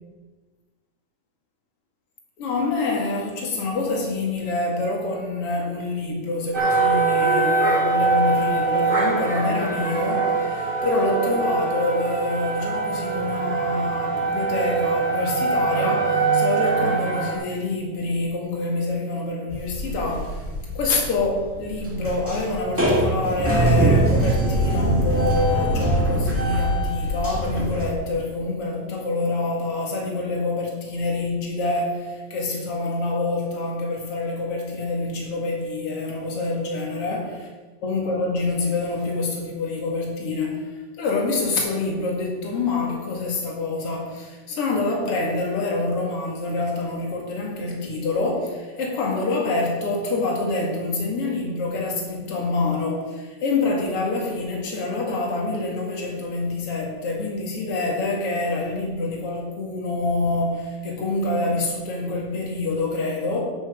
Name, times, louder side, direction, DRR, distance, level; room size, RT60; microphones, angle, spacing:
voice 1, 2.4-20.5 20.7-37.3 37.8-63.4, left 3 dB, 50° left, -1 dB, 2.9 m, -26 dB
sound 1, 6.5-17.3, right 4 dB, 25° right, 1.3 m, -23 dB
sound 2, 19.5-27.9, right 1 dB, 5° right, 1.1 m, -23 dB
10.5 x 6.1 x 6.7 m, 1.3 s
omnidirectional pair, 3.4 m